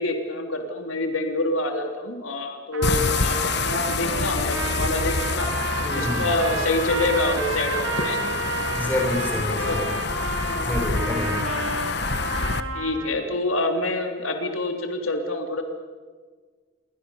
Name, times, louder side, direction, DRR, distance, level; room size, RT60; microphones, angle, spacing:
voice 1, 0.0-5.5 5.9-8.4 9.6-10.1 12.7-15.6, left 2 dB, 85° left, 5 dB, 3.2 m, -27 dB
Trumpet, 2.7-13.1, right 3 dB, 75° right, 3.6 m, -31 dB
sound 1, 2.8-12.6, left 4 dB, 55° left, 1.3 m, -27 dB
voice 2, 5.8-6.3 8.7-9.9 10.6-11.4, left 1 dB, 10° left, 0 dB, 6.9 m, -28 dB
28.5 x 23.5 x 7.1 m, 1.5 s
head